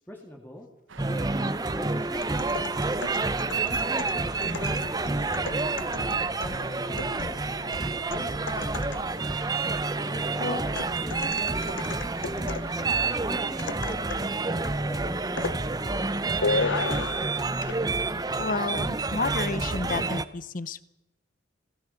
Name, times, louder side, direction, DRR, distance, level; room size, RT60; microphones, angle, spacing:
voice 1, 0.1-0.7 1.1-2.4 3.6-4.0 4.3-6.7 7.0-9.0 10.0-12.5 12.7-12.9 13.2-17.3 18.7-18.9, left 1 dB, 10° left, 1 dB, 2.4 m, -43 dB
sound 1, 0.9-13.2, right 4 dB, 80° right, 1.2 m, -47 dB
sound 2, 1.0-20.2, right 3 dB, 20° right, 0.6 m, -29 dB
sound 3, 2.1-9.2 10.8-12.8 13.6-14.3 14.6-14.9 15.4-15.6 16.4-17.3 17.6-17.8, left 4 dB, 75° left, 0.9 m, -35 dB
voice 2, 18.4-20.9, left 3 dB, 45° left, 16 dB, 0.8 m, -31 dB
26.5 x 17.0 x 5.9 m, 1.0 s
head